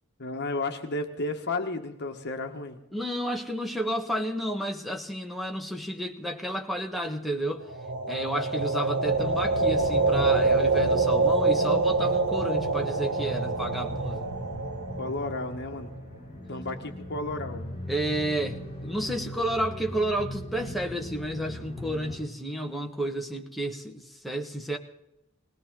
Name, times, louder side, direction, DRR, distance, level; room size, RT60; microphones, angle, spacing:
voice 1, 0.2-2.8 15.0-15.9 16.5-17.6, left 2 dB, 50° left, 4 dB, 1.6 m, -32 dB
voice 2, 2.9-7.6 8.1-14.2 17.9-24.8, right 1 dB, ahead, 3 dB, 1.6 m, -31 dB
sound 1, 7.7-15.7, right 3 dB, 65° right, 1.0 m, -26 dB
sound 2, 9.0-22.2, equal, 30° left, 7.0 m, -39 dB
21.0 x 17.5 x 3.9 m, 0.88 s
head